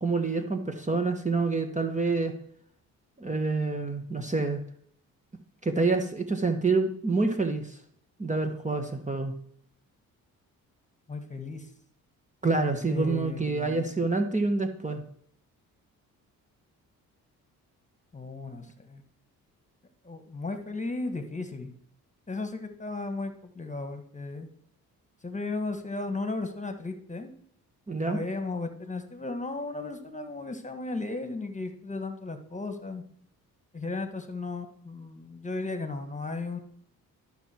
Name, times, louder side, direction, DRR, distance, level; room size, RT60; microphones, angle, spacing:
voice 1, 0.0-2.3 3.2-4.6 5.6-7.8 8.2-9.3 12.4-15.0 27.9-28.2, right 3 dB, 20° right, 6 dB, 1.2 m, -27 dB
voice 2, 11.1-11.7 12.9-14.0 18.1-19.0 20.0-21.7 22.3-24.5 25.2-27.3 28.0-33.0 33.7-36.6, left 3 dB, 20° left, 7 dB, 1.6 m, -35 dB
12.5 x 5.9 x 4.5 m, 0.67 s
supercardioid pair, 60°, 37 cm